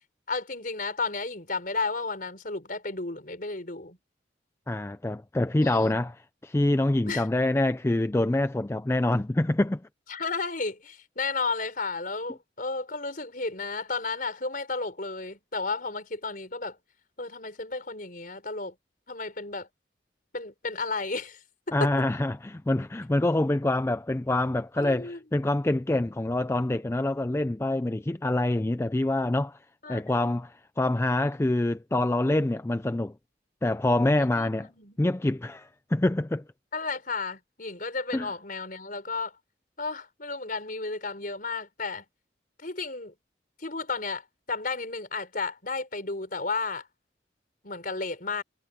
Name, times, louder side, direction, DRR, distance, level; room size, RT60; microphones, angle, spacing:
voice 1, 0.3-4.0 5.6-6.0 7.1-7.3 10.1-16.8 17.2-18.7 19.1-19.7 20.3-21.4 21.7-21.9 24.8-25.2 29.8-30.3 34.3-35.0 36.7-39.3 39.8-42.0 42.6-43.1 43.6-46.9 47.6-48.4, left 3 dB, 45° left, 4.7 m, -33 dB
voice 2, 4.7-6.1 6.4-9.8 21.7-29.6 29.9-33.1 33.6-34.7 35.0-36.4 38.1-38.3, left 1 dB, 15° left, 0.4 m, -26 dB
head